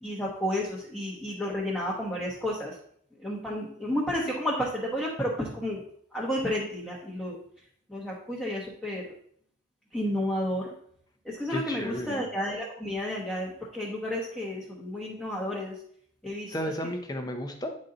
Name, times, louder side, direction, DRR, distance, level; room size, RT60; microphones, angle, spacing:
voice 1, 0.0-2.7 3.2-5.8 6.1-7.4 7.9-9.0 9.9-10.7 11.2-15.7 16.2-16.7, left 1 dB, 5° left, -5 dB, 1.1 m, -31 dB
voice 2, 11.5-12.2 16.5-17.8, equal, 20° left, 5 dB, 0.7 m, -33 dB
9.0 x 4.2 x 3.9 m, 0.65 s
head